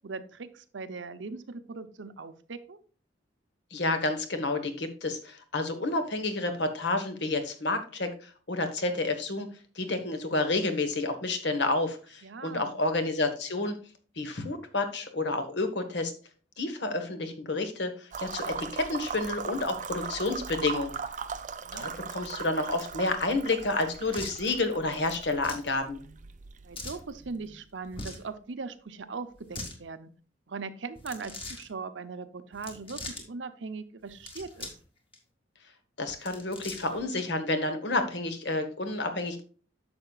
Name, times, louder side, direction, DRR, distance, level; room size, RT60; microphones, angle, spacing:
voice 1, 0.0-2.8 12.2-12.7 21.6-21.9 26.6-30.1 30.5-34.7, right 4 dB, 80° right, 11 dB, 0.7 m, -40 dB
voice 2, 3.7-13.8 14.2-16.1 16.6-20.9 21.7-26.0 36.0-39.4, left 2 dB, 65° left, 8 dB, 1.3 m, -30 dB
sound 1, 18.1-27.9, right 6 dB, 45° right, 0.6 m, -39 dB
sound 2, 24.1-24.4 25.4-25.7 26.7-27.0 27.9-28.3 29.3-29.8 30.9-31.6 32.5-33.2 34.1-34.8 35.1-35.2 36.1-37.0, left 2 dB, 30° left, 1.9 m, -41 dB
10.5 x 6.9 x 2.4 m, 0.40 s
head